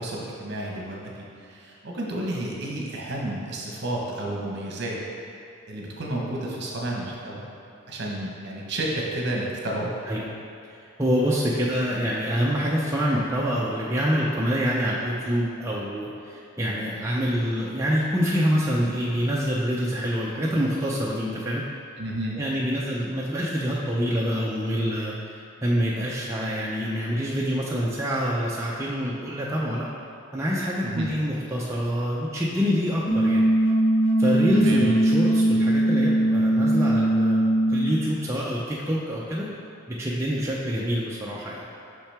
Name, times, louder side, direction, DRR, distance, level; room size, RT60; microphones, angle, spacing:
voice 1, 0.0-5.0 5.7-7.5 7.9-9.9 22.0-22.4 30.8-31.1 34.5-34.8, right 1 dB, 55° right, -2 dB, 1.0 m, -31 dB
voice 2, 10.7-21.6 22.4-29.9 30.3-33.4 34.2-39.5 39.9-41.7, equal, 15° right, -5 dB, 0.5 m, -26 dB
sound 1, 33.1-38.0, right 1 dB, 60° left, 1.0 m, -20 dB
5.8 x 5.6 x 3.4 m, 2.5 s
head